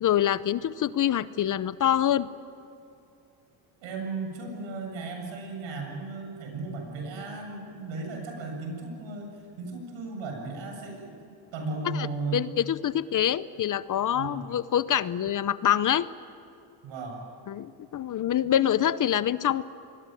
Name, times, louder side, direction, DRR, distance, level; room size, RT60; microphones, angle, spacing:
voice 1, 0.0-2.3 11.9-12.1 12.3-16.1 17.5-19.6, left 10 dB, 40° left, 16 dB, 0.8 m, -25 dB
voice 2, 3.8-11.2 11.5-12.6 14.1-14.4 16.8-17.2, right 3 dB, 75° right, 2 dB, 7.7 m, -35 dB
27.5 x 21.5 x 9.2 m, 2.6 s
cardioid pair, 120°, 46 cm